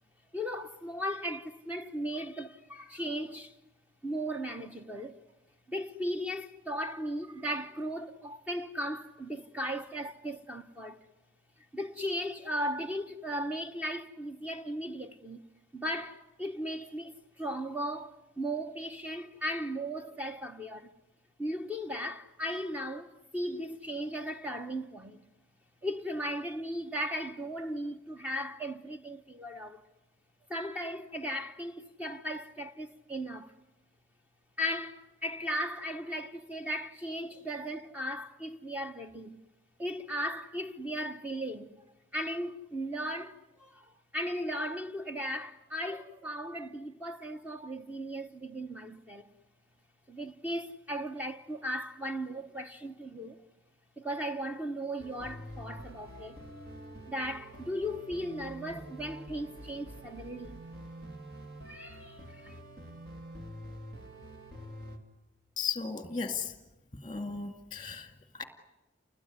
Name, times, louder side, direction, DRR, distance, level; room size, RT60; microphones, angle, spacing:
voice 1, 0.3-3.5 4.0-5.2 5.7-11.0 11.7-15.4 15.7-20.9 21.4-25.2 25.8-29.8 30.5-33.5 34.6-39.4 39.8-41.8 42.1-43.9 44.1-49.3 50.1-53.4 54.0-56.4 57.1-60.6 61.6-62.6, equal, 10° right, 0.9 m, -37 dB
sound 1, 55.0-65.0, right 1 dB, 55° right, 2.8 m, -47 dB
voice 2, 65.6-66.6 67.0-68.4, left 5 dB, 20° left, 2.2 m, -36 dB
29.5 x 20.5 x 9.7 m
head